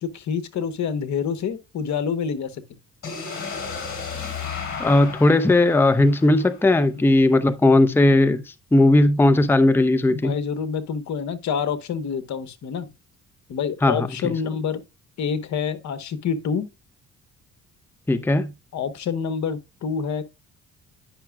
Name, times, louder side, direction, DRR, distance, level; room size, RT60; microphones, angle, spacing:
voice 1, 0.0-2.6 7.0-7.1 10.1-12.9 13.5-14.8 15.2-16.7 18.7-20.2, left 6 dB, 70° left, 1.0 m, -27 dB
sound 1, 3.0-6.9, left 5 dB, 45° left, 3.4 m, -34 dB
voice 2, 4.8-8.4 8.7-10.3 13.8-14.3 18.1-18.5, left 2 dB, 5° left, 0.6 m, -17 dB
9.8 x 5.9 x 2.3 m
cardioid pair, 90°, 30 cm